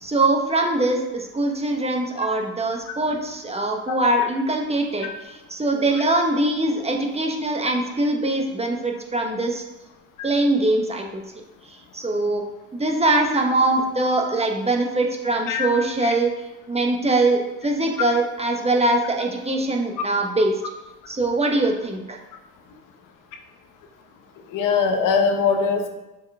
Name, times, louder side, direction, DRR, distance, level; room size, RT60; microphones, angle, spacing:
voice 1, 0.0-9.6 10.2-11.0 11.9-12.4 12.7-16.3 16.7-20.5 21.1-22.2, right 2 dB, 20° right, 2 dB, 1.1 m, -22 dB
voice 2, 24.5-25.9, left 5 dB, 65° left, 4 dB, 1.1 m, -21 dB
6.8 x 4.6 x 3.6 m, 1.0 s
supercardioid pair, 85°, 35 cm